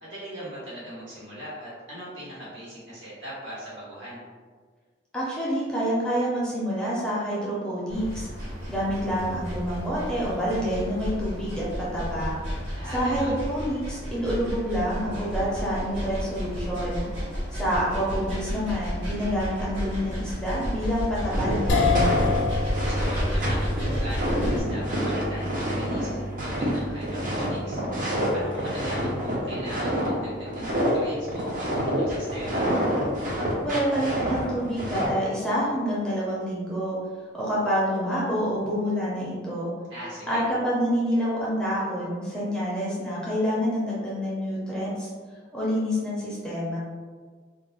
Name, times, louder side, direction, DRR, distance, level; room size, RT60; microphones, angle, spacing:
voice 1, 0.0-4.2 12.8-13.4 22.8-27.8 28.3-32.7 39.9-40.4, equal, 80° right, -8 dB, 1.2 m, -39 dB
voice 2, 5.1-8.3 8.7-12.3 12.9-17.0 17.5-22.2 33.6-37.0 37.3-39.7 40.3-45.1 45.5-46.8, equal, 5° left, -7 dB, 0.6 m, -27 dB
sound 1, 7.9-24.6, equal, 60° right, 1.4 m, -32 dB
sound 2, 21.3-30.1 30.5-31.0 31.3-35.1, equal, 45° right, 0.6 m, -28 dB
sound 3, 21.7-34.0, left 2 dB, 75° left, 0.5 m, -31 dB
2.4 x 2.1 x 3.9 m, 1.5 s
head